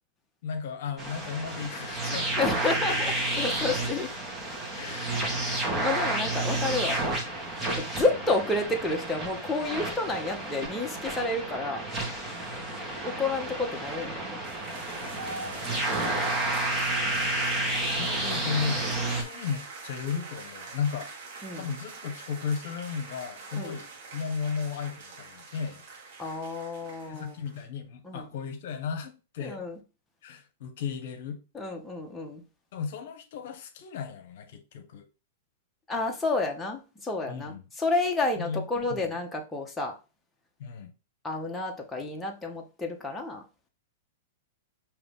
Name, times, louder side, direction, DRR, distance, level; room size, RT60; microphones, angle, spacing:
voice 1, 0.4-2.5 4.7-5.7 12.5-13.0 15.0-15.8 17.0-17.3 17.6-21.1 21.5-25.8 27.1-29.6 30.2-31.4 32.7-35.1 37.3-37.7 38.4-38.6 38.9-39.0 40.6-40.9, left 6 dB, 65° left, 0.9 m, -35 dB
sound 1, 1.0-19.2, right 2 dB, 15° right, 1.5 m, -31 dB
voice 2, 2.4-4.1 5.2-5.4 5.8-7.0 7.7-11.8 13.0-14.4 16.7-16.8 21.4-21.6 23.6-23.7 26.2-27.4 28.0-28.3 29.4-29.8 31.5-32.4 35.9-39.9 41.2-43.4, left 3 dB, 10° left, 0.9 m, -30 dB
sound 2, 14.4-27.7, right 3 dB, 60° right, 1.5 m, -43 dB
5.1 x 3.0 x 3.4 m
hypercardioid pair, 120°, 0 cm